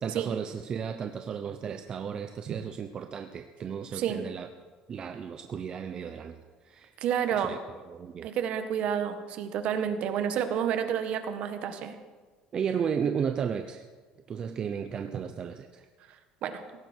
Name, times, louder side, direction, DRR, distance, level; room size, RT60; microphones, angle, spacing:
voice 1, 0.0-4.5 4.9-6.9 7.3-7.6 7.9-8.3 12.5-13.8 14.3-15.8, right 7 dB, 35° right, 7 dB, 0.8 m, -34 dB
voice 2, 7.0-7.6 8.2-11.9 16.4-16.6, right 8 dB, 55° right, 8 dB, 1.7 m, -30 dB
17.5 x 16.0 x 4.6 m, 1.4 s
cardioid pair, 135°, 2 cm